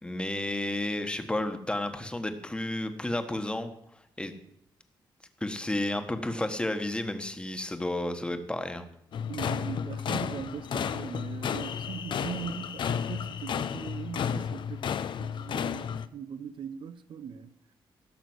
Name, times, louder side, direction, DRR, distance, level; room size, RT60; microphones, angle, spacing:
voice 1, 0.0-3.7 4.2-4.3 5.4-8.8, left 1 dB, 10° left, 1.4 m, -32 dB
sound 1, 9.1-16.1, left 8 dB, 60° left, 0.7 m, -32 dB
voice 2, 9.3-17.5, right 7 dB, 65° right, 0.8 m, -40 dB
16.5 x 6.6 x 8.0 m
cardioid pair, 115°, 9 cm